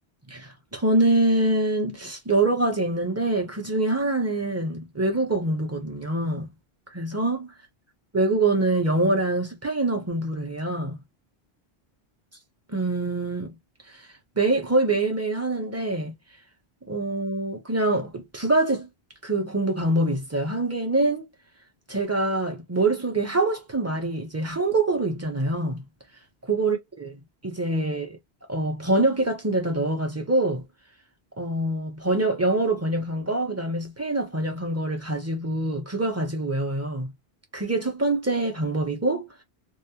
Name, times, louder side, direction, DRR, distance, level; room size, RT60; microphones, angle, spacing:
voice 1, 0.3-6.5 6.9-7.5 8.1-11.0 12.7-13.5 13.9-14.1 14.4-16.1 16.9-18.9 19.2-21.3 21.9-25.9 26.4-28.2 28.5-30.6 31.4-37.1 37.5-39.3, right 2 dB, 20° right, 0.6 m, -25 dB
2.3 x 2.0 x 2.8 m
omnidirectional pair, 1.0 m